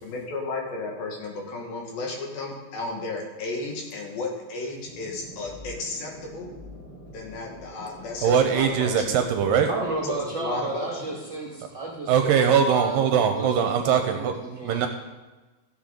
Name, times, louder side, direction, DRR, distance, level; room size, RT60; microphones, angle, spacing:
voice 1, 0.0-6.5 7.1-9.2 10.0-11.2, left 3 dB, 75° left, 0 dB, 3.3 m, -33 dB
Decrease Detents, 4.8-10.2, left 1 dB, 20° left, 1.2 m, -45 dB
voice 2, 8.2-9.7 12.1-14.3 14.6-14.9, right 7 dB, 80° right, 5 dB, 2.2 m, -21 dB
voice 3, 9.7-12.4 12.7-14.9, right 2 dB, 55° right, -3 dB, 1.2 m, -32 dB
15.0 x 7.1 x 3.8 m, 1.2 s
omnidirectional pair, 4.4 m